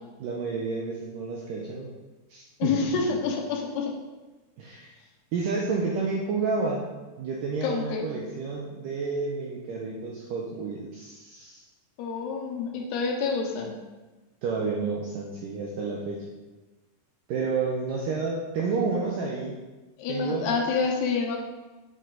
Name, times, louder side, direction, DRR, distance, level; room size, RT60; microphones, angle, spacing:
voice 1, 0.2-1.9 2.3-2.8 3.1-3.2 4.6-4.9 5.3-6.9 7.2-11.6 14.4-16.3 17.3-19.6 20.1-20.6, right 4 dB, 80° right, -2 dB, 2.0 m, -30 dB
voice 2, 2.6-3.9 7.6-8.1 12.0-13.7 20.0-21.4, left 5 dB, 75° left, 1 dB, 2.9 m, -28 dB
8.3 x 7.5 x 3.9 m, 1.2 s
omnidirectional pair, 4.9 m